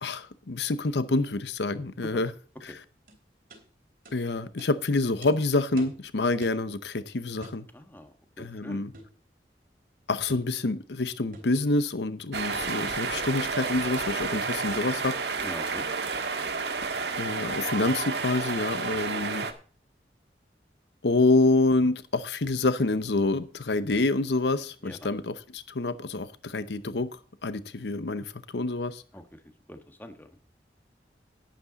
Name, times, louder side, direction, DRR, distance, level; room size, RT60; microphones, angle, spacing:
voice 1, 0.0-2.3 2.6-2.8 4.1-7.7 8.4-8.9 10.1-15.2 17.2-19.5 21.0-29.0, left 2 dB, 80° left, 0.8 m, -27 dB
sound 1, 3.1-3.2 3.5-3.6 4.0-4.2 4.6-4.7 5.2-5.3 5.8-6.0 6.4-6.7 7.4-7.6 8.9-9.2 10.3-10.5 11.3-11.6, right 1 dB, 50° right, 3.3 m, -47 dB
voice 2, 7.7-8.8 15.4-15.8 18.9-19.0 24.8-25.2 29.1-29.4 29.7-30.3, equal, 10° left, 1.4 m, -43 dB
sound 2, 12.3-19.5, right 4 dB, 75° right, 1.7 m, -31 dB
11.5 x 10.5 x 4.0 m
head